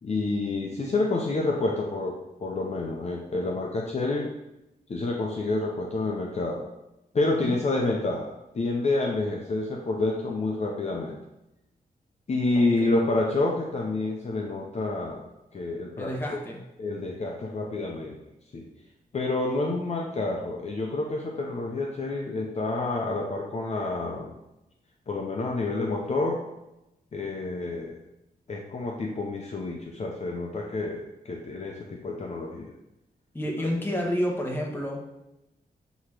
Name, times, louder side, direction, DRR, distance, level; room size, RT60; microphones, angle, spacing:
voice 1, 0.0-4.3 4.9-6.6 7.1-11.2 12.3-15.2 15.5-16.1 16.8-18.2 18.5-18.7 19.1-24.3 25.1-26.4 27.1-28.0 28.5-32.7 33.6-33.7, left 2 dB, 45° left, -1 dB, 0.8 m, -28 dB
voice 2, 7.2-7.6 12.5-12.7 16.0-16.6 33.3-35.0, equal, 15° left, -1 dB, 1.3 m, -30 dB
7.9 x 3.0 x 4.8 m, 0.90 s
wide cardioid pair, 130°, 16 cm